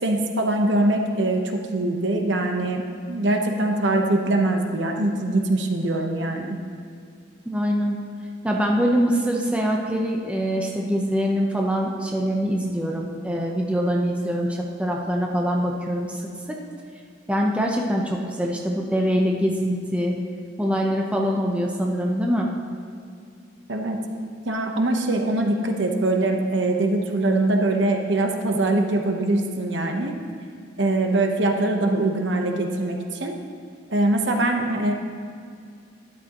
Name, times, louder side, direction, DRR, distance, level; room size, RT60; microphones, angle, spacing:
voice 1, 0.0-6.6 23.7-24.0 24.5-30.2 30.8-33.3 33.9-34.9, right 2 dB, 70° right, 3 dB, 1.0 m, -23 dB
voice 2, 7.5-8.0 8.4-16.6 17.3-20.2 20.6-22.5, equal, 5° right, -1 dB, 0.8 m, -24 dB
12.0 x 11.5 x 3.0 m, 2.4 s
head